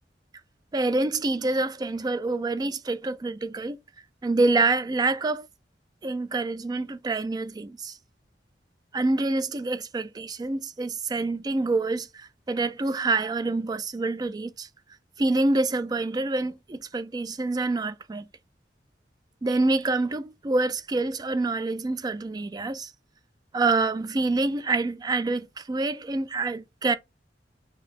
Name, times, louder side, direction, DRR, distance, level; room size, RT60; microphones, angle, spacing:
voice 1, 0.7-3.8 4.2-5.5 6.0-8.0 8.9-14.7 15.2-18.2 19.4-22.9 23.5-26.9, right 3 dB, 20° right, 0.3 m, -26 dB
4.5 x 2.7 x 3.6 m
head